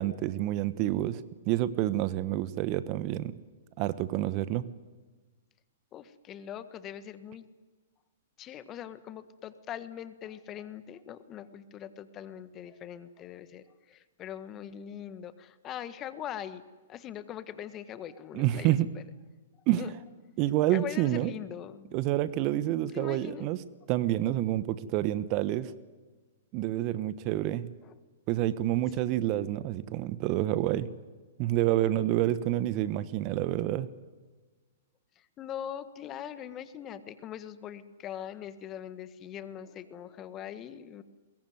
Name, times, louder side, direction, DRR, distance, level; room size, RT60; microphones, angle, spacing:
voice 1, 0.0-3.4 3.8-4.7 18.3-18.9 19.7-19.8 20.4-21.3 21.9-23.6 23.9-25.7 26.5-27.7 28.3-30.9 31.4-33.9, right 14 dB, 40° right, 15 dB, 1.1 m, -28 dB
voice 2, 5.9-7.5 8.4-16.6 16.9-19.0 19.7-19.9 20.7-22.0 22.9-23.5 27.8-27.9 29.0-29.1 35.2-41.0, left 10 dB, 30° left, 12 dB, 1.5 m, -42 dB
22.0 x 22.0 x 9.6 m, 1.3 s
figure-of-eight pair, 115°, 0 cm